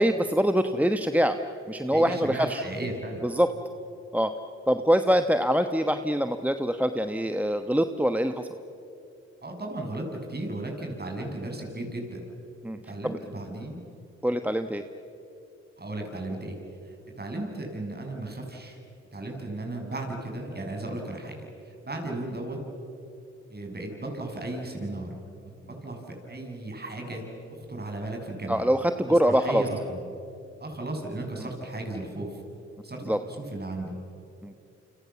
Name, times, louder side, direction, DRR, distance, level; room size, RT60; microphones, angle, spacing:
voice 1, 0.0-1.4 1.7-2.6 3.2-3.5 4.1-4.3 4.7-8.5 12.6-12.8 13.0-13.2 14.2-14.8 28.5-29.6 33.1-33.2 34.4-34.6, equal, 5° right, 8 dB, 1.2 m, -24 dB
voice 2, 1.9-3.2 9.4-12.2 12.9-13.8 15.8-16.6 16.8-18.8 19.1-22.6 23.5-25.2 25.4-27.2 27.5-28.7 29.1-30.0 30.6-32.4 32.8-33.9, right 2 dB, 35° right, 2 dB, 7.4 m, -35 dB
29.0 x 26.5 x 7.2 m, 2.8 s
supercardioid pair, 55°, 29 cm